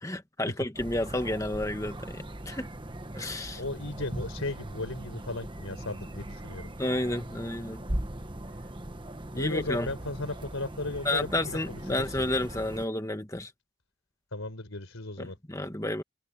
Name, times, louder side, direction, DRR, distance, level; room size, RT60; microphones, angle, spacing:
voice 1, 0.0-2.7 3.2-3.6 6.8-7.8 9.3-9.9 11.0-13.5 15.2-16.0, left 1 dB, 15° left, 1.6 m, -31 dB
sound 1, 0.7-12.9, right 1 dB, 25° right, 1.2 m, -39 dB
voice 2, 3.5-6.7 9.4-12.2 14.3-15.4, left 2 dB, 85° left, 4.4 m, -36 dB
head